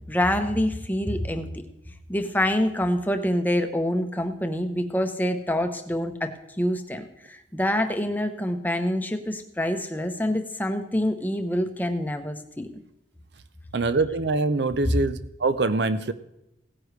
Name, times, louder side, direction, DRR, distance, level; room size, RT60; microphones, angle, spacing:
voice 1, 0.1-1.6 2.1-12.7 14.8-14.9, left 1 dB, 10° left, 7 dB, 0.8 m, -26 dB
voice 2, 13.7-16.1, right 3 dB, 65° right, 13 dB, 0.6 m, -24 dB
17.0 x 9.8 x 3.2 m, 0.88 s
head